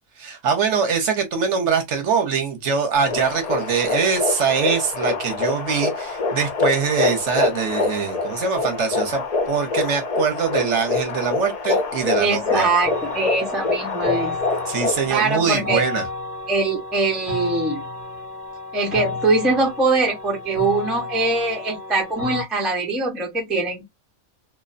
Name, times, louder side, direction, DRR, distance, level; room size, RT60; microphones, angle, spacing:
voice 1, 0.2-12.7 14.7-16.0, right 6 dB, 65° right, 0.9 m, -23 dB
sound 1, 2.9-15.1, left 3 dB, 70° left, 0.3 m, -25 dB
voice 2, 12.2-14.3 15.1-15.8 16.5-17.8 18.7-23.8, right 3 dB, ahead, 0.4 m, -22 dB
sound 2, 12.8-22.4, left 3 dB, 40° right, 0.7 m, -32 dB
2.4 x 2.1 x 2.4 m
omnidirectional pair, 1.5 m